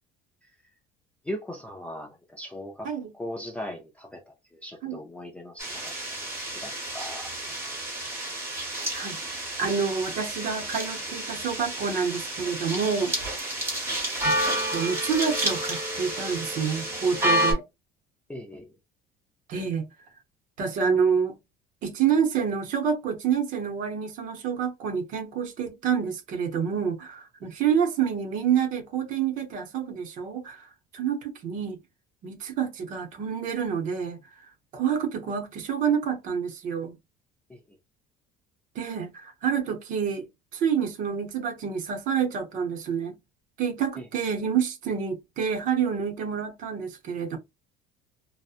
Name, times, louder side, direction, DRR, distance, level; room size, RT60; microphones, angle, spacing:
voice 1, 1.2-2.9 3.1-4.2 4.5-5.9 6.5-7.7 18.3-18.7 37.5-37.6 44.0-44.1, left 1 dB, 5° left, 0.3 m, -38 dB
sound 1, 5.6-17.5, right 1 dB, 15° right, 1.0 m, -30 dB
voice 2, 9.6-13.1 14.2-14.4 14.7-17.6 19.5-19.9 20.6-21.4 21.8-30.7 30.9-31.8 32.2-34.2 34.7-36.9 38.8-40.3 40.5-43.2 43.6-47.4, right 7 dB, 50° right, 0.7 m, -28 dB
2.7 x 2.1 x 2.4 m
cardioid pair, 165°, 18 cm